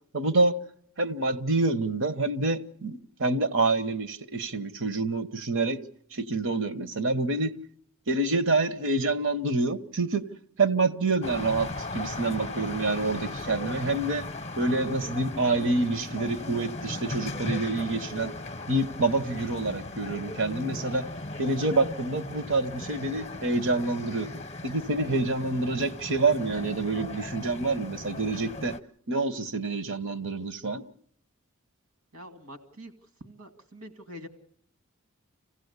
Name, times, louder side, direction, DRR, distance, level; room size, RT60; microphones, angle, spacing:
voice 1, 0.1-0.6 1.0-5.8 6.1-7.6 8.1-10.2 10.6-11.7 11.9-14.2 14.6-18.3 18.7-21.0 21.4-24.3 24.6-28.7 29.1-30.8, right 3 dB, 60° right, 1.1 m, -27 dB
sound 1, 11.2-28.8, left 2 dB, 30° left, 0.8 m, -37 dB
voice 2, 32.1-32.9 33.2-34.3, equal, 80° right, 2.3 m, -45 dB
26.5 x 16.0 x 8.2 m
head